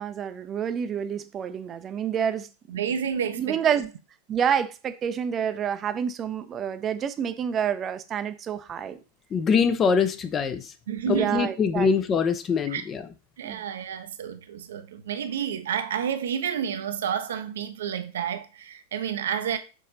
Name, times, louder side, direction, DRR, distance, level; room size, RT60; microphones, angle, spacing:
voice 1, 0.0-2.5 2.7-2.8 3.3-3.9 4.3-9.0 11.1-11.9 13.4-13.6, right 8 dB, 25° right, 0.6 m, -28 dB
voice 2, 2.7-3.8 10.9-11.5 12.7-12.8 13.4-19.6, right 8 dB, 60° right, 0.7 m, -30 dB
voice 3, 9.3-10.7 11.1-13.0, left 6 dB, 25° left, 0.7 m, -23 dB
6.4 x 4.2 x 3.9 m
figure-of-eight pair, 90°, 0 cm